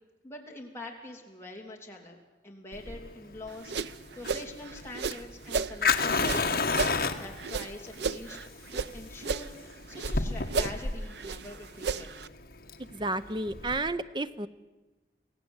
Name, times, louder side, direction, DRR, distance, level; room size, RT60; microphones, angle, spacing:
voice 1, 0.2-2.2 2.4-9.5 9.9-12.1, left 2 dB, 15° left, -1 dB, 3.1 m, -45 dB
Fire, 2.7-13.8, left 4 dB, 55° left, 1.6 m, -32 dB
sound 1, 3.5-5.8 6.2-8.9 9.2-10.2 10.5-12.3, right 4 dB, 70° right, 0.6 m, -33 dB
voice 2, 12.9-14.5, right 2 dB, 25° right, 12 dB, 0.6 m, -31 dB
24.5 x 16.5 x 8.0 m, 1.2 s
head